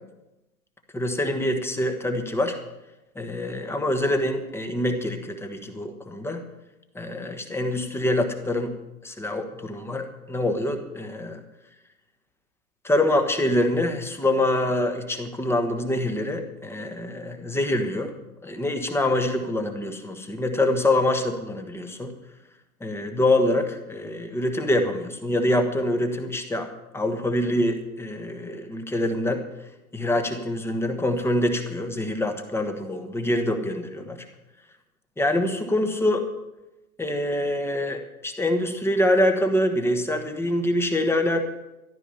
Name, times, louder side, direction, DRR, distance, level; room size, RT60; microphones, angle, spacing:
voice 1, 0.9-2.6 3.1-6.4 6.9-8.7 9.0-11.4 12.8-18.1 18.4-22.1 22.8-29.4 29.9-34.2 35.2-36.3 37.0-41.4, left 1 dB, 5° left, 6 dB, 1.3 m, -25 dB
14.0 x 12.0 x 5.6 m, 0.97 s
hypercardioid pair, 120°, 44 cm